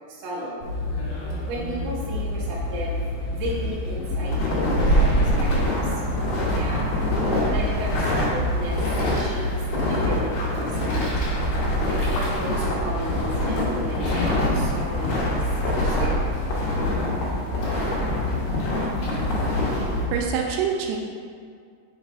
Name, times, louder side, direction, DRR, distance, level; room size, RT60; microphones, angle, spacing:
voice 1, 0.1-0.6 1.4-3.0 3.3-5.9 6.5-6.9 7.5-8.8 9.1-9.5 9.8-11.0 11.9-15.5 15.7-16.2, right 1 dB, 65° right, -6 dB, 1.6 m, -34 dB
sound 1, 0.6-20.3, equal, 55° left, 2.2 m, -27 dB
sound 2, 4.3-20.0, left 1 dB, 70° left, 2.7 m, -27 dB
voice 2, 19.7-21.0, right 7 dB, 85° right, 1 dB, 2.5 m, -27 dB
5.9 x 4.0 x 4.6 m, 2.1 s
omnidirectional pair, 4.8 m